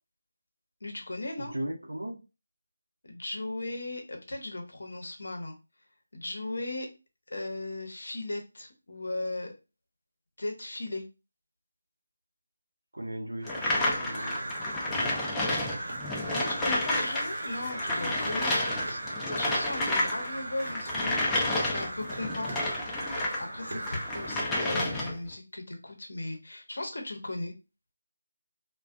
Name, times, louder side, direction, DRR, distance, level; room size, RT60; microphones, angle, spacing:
voice 1, 0.8-1.5 3.0-5.6 6.1-6.9 7.3-9.5 10.4-11.0 16.3-22.5 23.4-27.5, left 2 dB, 70° left, 0.7 m, -37 dB
voice 2, 1.4-2.2 12.9-15.8, right 1 dB, 85° right, 0.6 m, -39 dB
sound 1, 13.4-23.4 23.8-25.3, left 1 dB, 10° left, 0.4 m, -30 dB
Crow, 13.4-24.5, right 1 dB, 55° right, 1.0 m, -38 dB
2.4 x 2.2 x 2.4 m
figure-of-eight pair, 160°, 0 cm